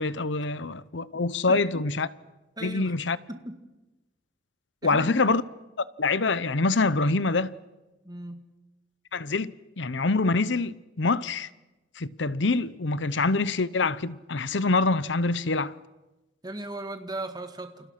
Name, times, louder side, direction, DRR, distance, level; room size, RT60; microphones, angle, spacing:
voice 1, 0.0-2.1 2.6-3.2 4.8-5.4 5.8-7.5 9.1-11.5 12.0-15.7, left 3 dB, 70° left, 0.9 m, -25 dB
voice 2, 2.6-2.9 3.3-3.6 4.8-5.2 8.0-8.4 16.4-17.9, right 1 dB, 20° right, 2.3 m, -37 dB
29.0 x 28.5 x 6.0 m
head